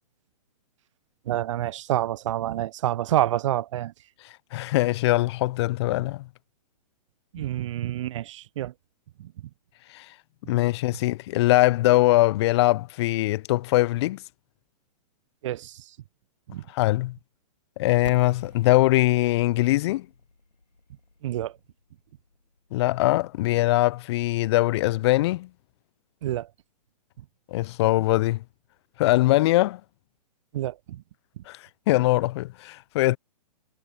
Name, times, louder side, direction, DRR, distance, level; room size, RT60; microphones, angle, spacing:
voice 1, 1.3-3.9 7.3-8.7 9.2-9.3 15.4-15.8 16.5-16.6 21.2-21.5 26.2-26.5 30.5-31.0, right 13 dB, 50° right, 0.4 m, -28 dB
voice 2, 4.5-6.3 9.9-10.1 10.5-14.2 16.7-17.2 17.8-20.1 22.7-25.5 27.5-28.4 29.0-29.8 31.5-31.6 31.9-33.2, left 17 dB, 40° left, 0.7 m, -22 dB
sound 1, 18.0-23.8, left 3 dB, 90° left, 3.6 m, -46 dB
figure-of-eight pair, 115°, 21 cm